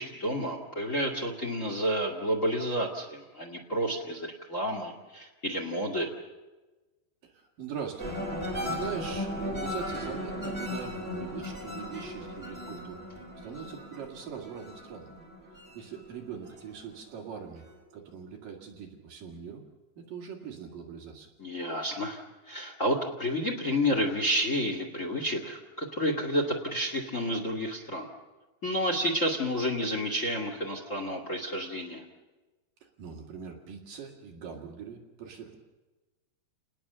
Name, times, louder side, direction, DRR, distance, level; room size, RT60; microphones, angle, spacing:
voice 1, 0.0-6.1 21.4-22.2 22.5-28.1 28.6-32.0, equal, 55° left, 4 dB, 0.8 m, -30 dB
voice 2, 7.2-8.1 8.4-15.1 15.7-17.6 17.9-19.6 20.0-21.3 32.8-35.6, right 7 dB, 55° right, 1 dB, 3.3 m, -42 dB
sound 1, 8.0-16.8 17.2-17.7, left 1 dB, 15° right, 4.2 m, -37 dB
29.0 x 20.0 x 6.8 m, 1.2 s
omnidirectional pair, 5.4 m